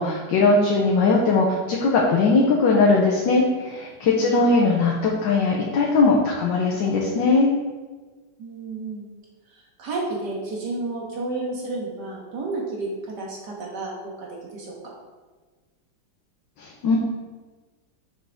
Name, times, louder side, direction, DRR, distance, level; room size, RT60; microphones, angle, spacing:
voice 1, 0.0-7.5 16.6-17.0, left 3 dB, 75° left, -2 dB, 1.5 m, -20 dB
voice 2, 4.1-4.4 8.4-9.1 9.8-12.9 13.2-14.3 14.5-14.7, right 3 dB, 65° right, -2 dB, 2.0 m, -31 dB
6.7 x 6.3 x 3.5 m, 1.3 s
omnidirectional pair, 2.0 m